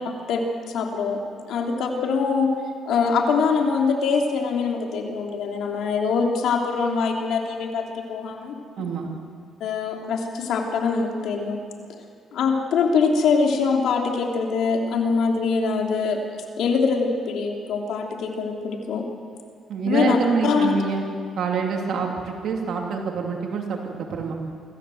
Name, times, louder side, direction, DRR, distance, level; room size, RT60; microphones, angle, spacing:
voice 1, 0.3-1.2 1.5-2.5 2.8-8.6 9.6-11.6 12.3-16.2 16.6-19.0 19.8-20.2 20.4-20.7, left 5 dB, 80° left, 2 dB, 3.1 m, -23 dB
voice 2, 8.8-9.1 19.7-21.0 21.4-24.3, right 5 dB, 70° right, 1 dB, 2.6 m, -26 dB
25.0 x 14.5 x 7.8 m, 2.2 s
cardioid pair, 90°, 0 cm